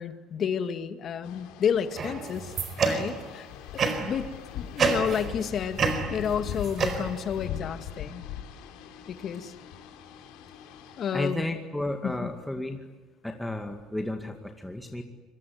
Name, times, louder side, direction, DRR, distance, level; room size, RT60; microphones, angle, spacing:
voice 1, 0.0-2.5 2.8-3.5 4.0-8.2 9.1-9.5 11.0-11.5 12.0-12.3, left 7 dB, 45° left, 9 dB, 2.1 m, -31 dB
sound 1, 1.2-11.1, left 10 dB, 85° left, 4.2 m, -41 dB
sound 2, 2.0-3.3 3.8-4.2 4.8-5.4 5.8-7.4, right 5 dB, 40° right, 4.6 m, -28 dB
voice 2, 11.1-12.8 13.2-15.0, left 1 dB, 5° left, 3 dB, 2.2 m, -33 dB
26.5 x 23.5 x 9.5 m, 1.3 s
cardioid pair, 135°, 0 cm